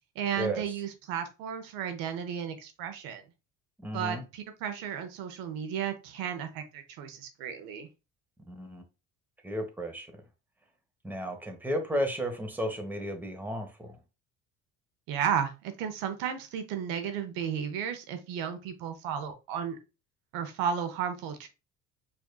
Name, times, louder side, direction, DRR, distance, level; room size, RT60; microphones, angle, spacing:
voice 1, 0.2-3.2 3.9-7.9 15.1-19.8 20.3-21.5, right 8 dB, 70° right, 0.7 m, -33 dB
voice 2, 3.8-4.2 8.5-8.8 9.4-10.1 11.0-14.0, equal, 5° right, 0.9 m, -33 dB
4.6 x 2.7 x 2.2 m
hypercardioid pair, 70°, 37 cm